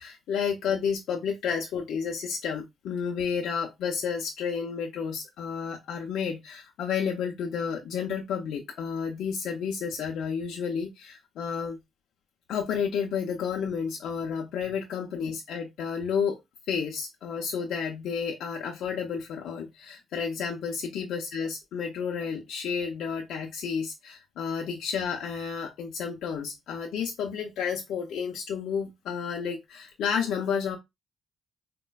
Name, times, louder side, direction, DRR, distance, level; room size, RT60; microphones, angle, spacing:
voice 1, 0.0-11.8 12.5-16.4 16.7-30.8, left 6 dB, 80° left, 0.5 m, -31 dB
4.0 x 2.1 x 2.2 m
cardioid pair, 90°, 0 cm